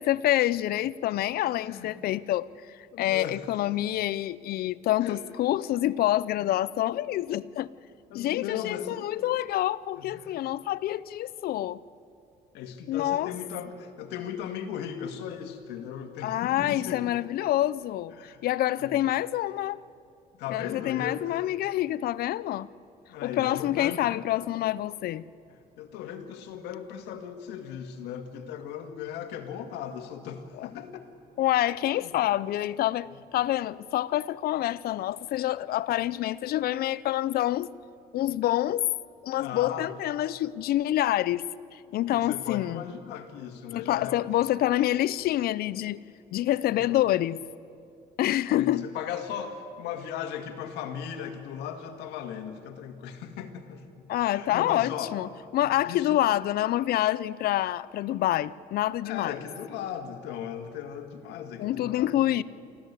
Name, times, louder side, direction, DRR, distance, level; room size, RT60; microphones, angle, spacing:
voice 1, 0.0-2.5 3.0-7.7 8.1-11.8 12.9-13.3 16.2-18.1 18.4-19.8 20.5-22.7 23.2-25.2 30.6-30.7 31.4-37.7 38.1-38.9 39.2-41.4 41.7-42.8 43.7-46.0 46.3-47.4 48.2-48.9 54.1-59.4 61.6-62.4, left 14 dB, 65° left, 0.5 m, -27 dB
voice 2, 1.6-1.9 2.9-3.4 5.0-5.2 8.1-9.1 10.0-10.4 12.5-17.2 18.1-18.4 18.8-19.1 20.3-21.4 23.1-24.0 25.5-31.1 32.0-32.1 39.3-39.9 42.1-44.3 46.7-47.0 48.5-55.2 55.6-56.2 59.0-62.4, left 8 dB, 90° left, 1.9 m, -37 dB
25.0 x 15.0 x 8.2 m
cardioid pair, 110°, 17 cm